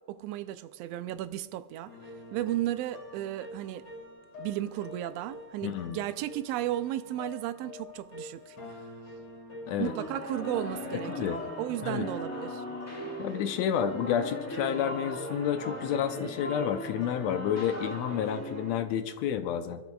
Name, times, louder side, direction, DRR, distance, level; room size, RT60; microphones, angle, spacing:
voice 1, 0.1-1.9 2.3-3.9 4.4-8.8 9.8-12.6, right 13 dB, 80° right, 1.5 m, -34 dB
sound 1, 1.9-17.2, left 2 dB, 45° left, 3.6 m, -47 dB
voice 2, 5.6-6.0 9.7-9.9 11.1-11.4 11.8-12.1 13.2-19.8, left 9 dB, 75° left, 1.8 m, -30 dB
sound 2, 9.8-18.7, equal, 10° left, 0.9 m, -39 dB
24.5 x 12.5 x 2.3 m
omnidirectional pair, 3.4 m